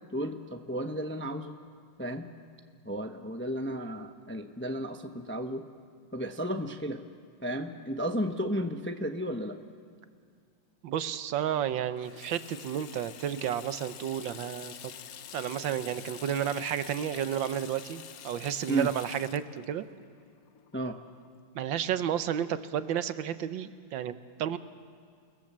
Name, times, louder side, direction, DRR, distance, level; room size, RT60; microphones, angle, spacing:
voice 1, 0.1-1.6 2.0-2.3 2.8-5.6 6.1-7.0 7.4-9.6 18.7-18.9 20.7-21.0, equal, 10° left, 5 dB, 0.6 m, -33 dB
voice 2, 10.8-14.9 15.3-19.9 21.5-24.6, right 9 dB, 80° right, 12 dB, 1.6 m, -32 dB
Water tap faucet / Sink (filling or washing), 12.0-21.3, left 9 dB, 60° left, 1.1 m, -47 dB
29.0 x 20.5 x 7.5 m, 2.2 s
omnidirectional pair, 2.1 m